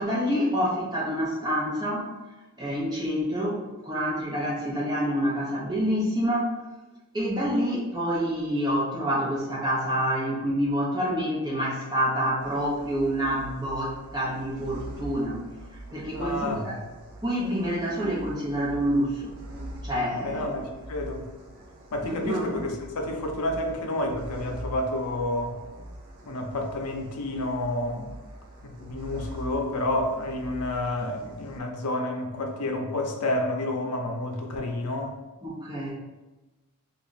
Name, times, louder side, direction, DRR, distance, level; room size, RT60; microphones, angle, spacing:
voice 1, 0.0-2.2 2.6-6.5 7.1-15.5 15.9-16.8 17.2-19.3 19.8-20.4 22.0-22.7 35.4-35.9, equal, 20° right, -6 dB, 0.8 m, -27 dB
sound 1, 12.4-31.6, right 1 dB, 85° right, 0.6 m, -43 dB
voice 2, 16.1-16.8 20.2-21.3 21.9-25.6 26.3-28.1 28.6-35.1, left 1 dB, 90° left, 3 dB, 0.6 m, -30 dB
2.9 x 2.4 x 3.9 m, 1.1 s
head